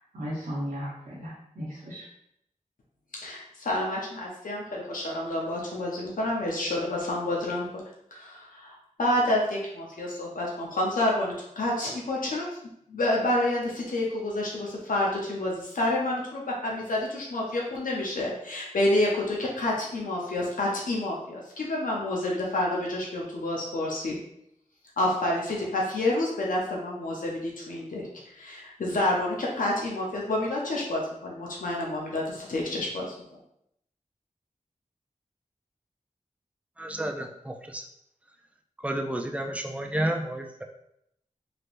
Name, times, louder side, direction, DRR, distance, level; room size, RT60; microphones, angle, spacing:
voice 1, 0.0-2.0, equal, 90° right, -8 dB, 0.9 m, -36 dB
voice 2, 3.2-7.8 8.1-12.5 12.9-24.2 25.0-33.4, left 1 dB, 85° left, -3 dB, 0.7 m, -29 dB
voice 3, 36.8-37.8 38.8-40.6, right 1 dB, 10° right, 3 dB, 0.4 m, -31 dB
3.2 x 2.9 x 2.5 m, 0.76 s
wide cardioid pair, 95°, 14 cm